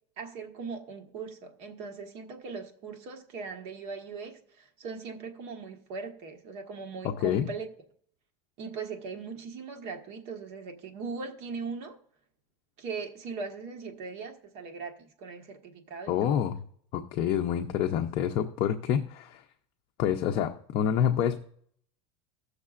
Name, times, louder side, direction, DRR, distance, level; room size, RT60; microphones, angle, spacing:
voice 1, 0.2-7.7 8.6-12.0 12.8-16.4, right 4 dB, 50° right, 1.4 m, -39 dB
voice 2, 7.0-7.5 16.1-16.6 16.9-19.4 20.0-21.4, left 9 dB, 45° left, 0.6 m, -27 dB
18.0 x 6.5 x 2.5 m
supercardioid pair, 155°, 13 cm